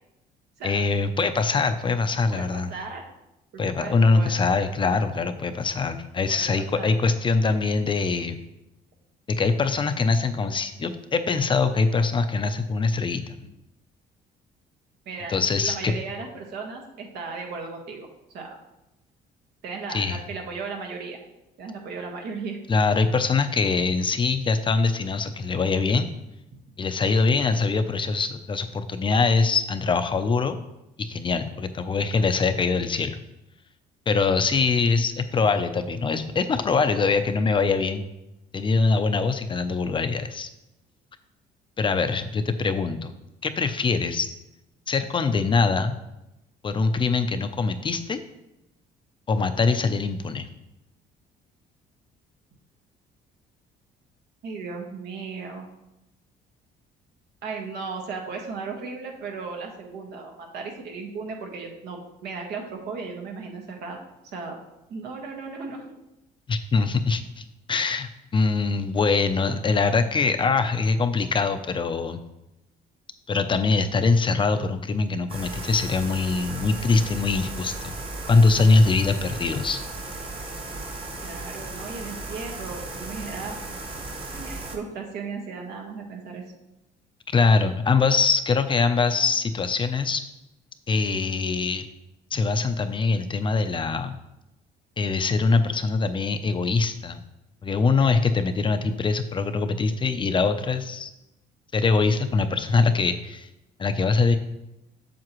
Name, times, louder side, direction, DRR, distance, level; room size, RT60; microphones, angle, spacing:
voice 1, 0.6-2.7 3.6-8.4 9.3-13.2 15.3-16.0 19.9-20.2 22.7-26.1 26.8-30.5 31.0-33.2 34.1-38.1 38.5-40.5 41.8-43.1 43.4-44.3 44.9-46.0 46.6-48.2 49.3-50.5 66.5-67.4 67.7-72.2 73.3-77.9 78.3-79.8 87.3-90.2 90.9-91.9 92.3-94.2 95.0-97.2 97.6-101.1 101.7-103.5 103.8-104.3, left 4 dB, 30° left, 9 dB, 0.6 m, -23 dB
voice 2, 2.3-3.0 3.5-4.4 6.3-6.9 15.0-15.3 15.6-18.1 18.3-18.6 19.6-21.2 21.6-22.6 54.4-55.7 57.4-64.0 64.3-64.6 64.9-65.9 81.2-83.6 84.3-86.4, right 4 dB, 75° right, 2 dB, 1.6 m, -36 dB
sound 1, 75.3-84.8, right 2 dB, 30° right, 1.4 m, -36 dB
7.5 x 7.0 x 3.1 m, 0.91 s
cardioid pair, 110°, 17 cm